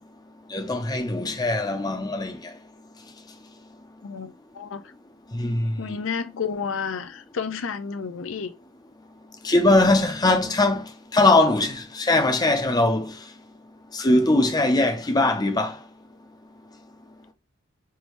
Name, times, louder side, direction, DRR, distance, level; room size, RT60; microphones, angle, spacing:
voice 1, 0.5-2.4 5.3-5.9 9.4-10.8 11.1-13.1 13.9-15.8, left 2 dB, 20° left, 0.6 m, -21 dB
voice 2, 4.0-4.8 5.8-8.5, left 6 dB, 70° left, 0.5 m, -31 dB
4.6 x 2.7 x 3.1 m
head